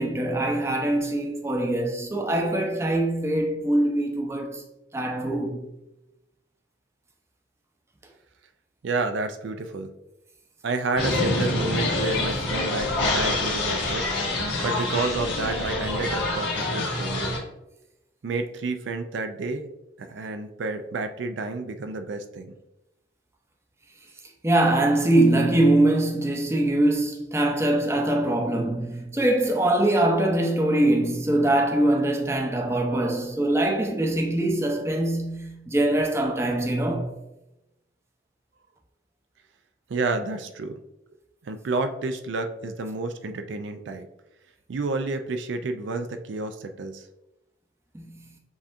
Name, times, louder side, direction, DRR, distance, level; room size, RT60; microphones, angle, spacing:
voice 1, 0.0-4.6 4.9-5.6 24.4-37.1 47.9-48.3, right 1 dB, 15° right, 0.5 m, -23 dB
voice 2, 8.8-9.9 10.6-14.1 14.6-17.4 18.2-19.7 20.0-22.5 39.9-40.8 41.4-44.1 44.7-47.0, right 3 dB, 75° right, 0.4 m, -30 dB
sound 1, 11.0-17.4, left 2 dB, 70° left, 1.6 m, -26 dB
7.2 x 2.7 x 2.5 m
head